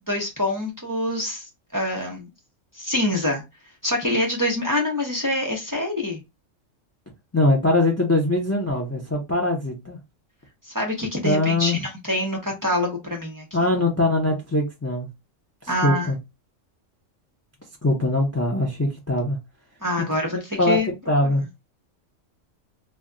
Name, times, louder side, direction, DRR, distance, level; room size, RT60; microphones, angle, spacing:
voice 1, 0.1-2.3 2.7-3.4 3.8-6.2 10.7-13.5 15.7-16.1 19.8-20.9, left 1 dB, 20° right, 0.5 m, -25 dB
voice 2, 7.3-10.0 11.2-11.8 13.5-15.1 15.8-16.2 17.8-19.4 20.0-20.1 20.6-20.8 21.1-21.4, left 2 dB, 25° left, 0.3 m, -22 dB
2.2 x 2.2 x 3.7 m
omnidirectional pair, 1.3 m